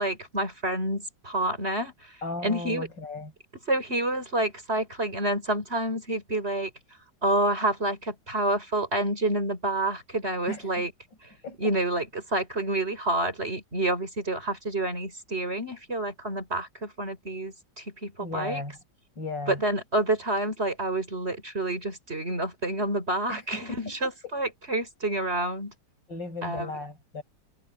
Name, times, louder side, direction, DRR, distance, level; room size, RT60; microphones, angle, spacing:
voice 1, 0.0-1.9 2.4-2.9 3.7-6.7 7.2-10.9 11.6-18.6 19.5-25.7 26.4-26.7, right 1 dB, 35° right, 6.0 m, -28 dB
voice 2, 2.2-3.3 10.5-10.8 11.4-11.7 18.2-18.8 19.2-19.6 23.3-24.0 24.2-24.3 25.4-25.5 26.1-27.2, left 3 dB, 90° left, 8.9 m, -36 dB
omnidirectional pair, 1.9 m